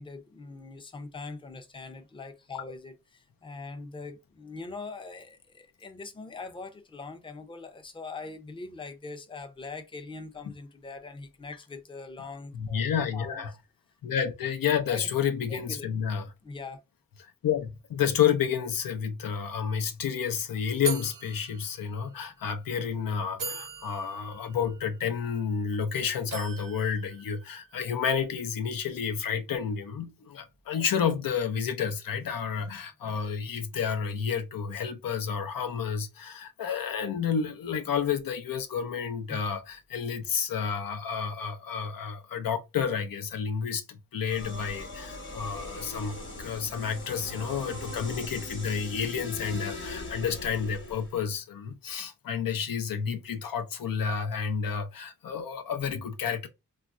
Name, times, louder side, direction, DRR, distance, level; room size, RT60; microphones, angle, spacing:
voice 1, 0.0-12.8 13.1-13.4 14.9-15.1 15.5-15.9 16.4-16.8 30.2-30.3 39.3-39.4, left 3 dB, 15° left, 0.5 m, -42 dB
voice 2, 12.5-13.5 14.0-16.3 17.4-56.5, left 7 dB, 85° left, 0.6 m, -30 dB
sound 1, 19.5-19.6 19.9-20.1 20.8-22.3 22.9-23.0 23.4-25.8 26.3-27.9, right 5 dB, 70° right, 0.7 m, -40 dB
sound 2, 44.2-51.2, left 2 dB, 35° left, 1.0 m, -40 dB
3.1 x 2.4 x 2.4 m
wide cardioid pair, 90°, 33 cm